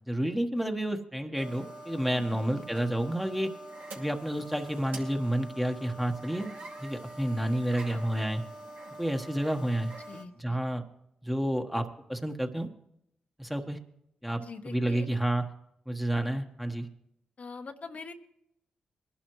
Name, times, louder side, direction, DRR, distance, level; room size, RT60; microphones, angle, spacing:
voice 1, 0.1-3.5 3.9-6.5 6.8-8.4 9.0-9.9 10.4-10.8 11.2-12.7 13.4-13.8 14.2-15.4 15.9-16.9, right 1 dB, 5° right, 5 dB, 1.3 m, -30 dB
sound 1, 1.3-10.2, right 1 dB, 70° right, 2.3 m, -45 dB
voice 2, 2.1-2.6 7.9-8.0 10.1-10.6 14.4-15.1 17.4-18.1, left 4 dB, 55° left, 5 dB, 1.1 m, -44 dB
21.0 x 11.5 x 3.1 m, 0.76 s
supercardioid pair, 50°, 3 cm